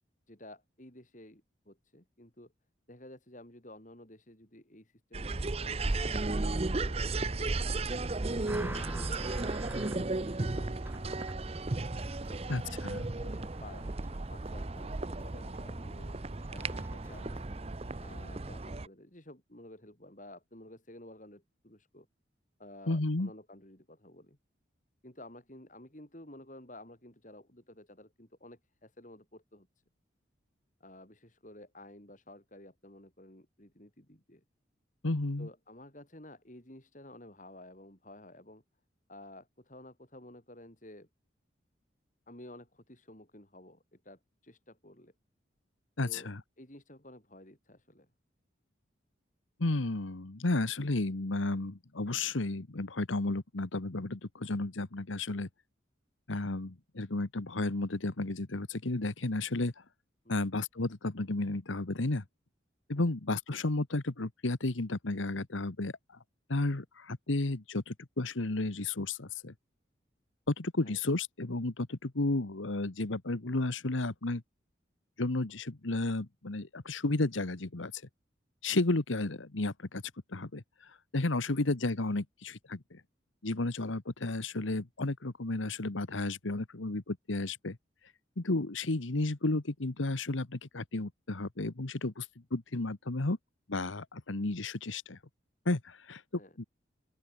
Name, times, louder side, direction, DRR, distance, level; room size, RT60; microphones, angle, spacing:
voice 1, 0.3-2.5 2.9-7.8 8.3-9.2 9.8-11.4 12.3-12.4 13.0-13.9 14.3-16.2 16.5-17.5 18.0-22.1 22.6-24.4 25.0-29.7 30.8-34.4 35.4-38.6 39.1-41.1 42.3-45.1 46.0-48.1 60.2-60.5 63.0-63.1 70.8-71.0 81.5-81.6 96.4-96.6, left 1 dB, 40° left, 4.5 m, -52 dB
sound 1, 5.1-18.9, right 2 dB, 30° right, 0.7 m, -35 dB
sound 2, 8.2-18.7, right 1 dB, 10° right, 1.9 m, -46 dB
voice 2, 12.5-13.1 22.9-23.3 35.0-35.5 46.0-46.4 49.6-55.5 56.3-59.8 60.3-62.2 62.9-66.2 66.5-69.5 70.5-74.4 75.2-78.0 78.6-80.0 80.3-83.0 83.4-87.8 88.4-93.4 93.7-95.2 95.6-96.2 96.6-96.7, left 2 dB, 85° left, 1.4 m, -33 dB
open air
head